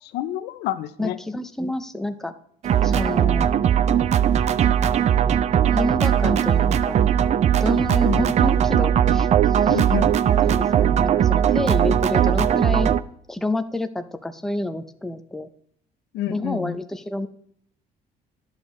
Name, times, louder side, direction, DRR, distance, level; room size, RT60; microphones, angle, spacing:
voice 1, 0.0-1.2 8.0-8.3 9.7-10.2 16.1-16.7, left 12 dB, 85° left, 12 dB, 0.6 m, -29 dB
voice 2, 1.0-2.3 2.8-3.5 5.7-7.0 7.6-9.8 10.4-12.9 13.3-15.5 16.3-17.3, left 1 dB, ahead, 8 dB, 0.6 m, -28 dB
sound 1, 2.6-13.0, right 9 dB, 40° right, 0.4 m, -19 dB
11.5 x 6.9 x 3.2 m, 0.68 s
cardioid pair, 110°, 17 cm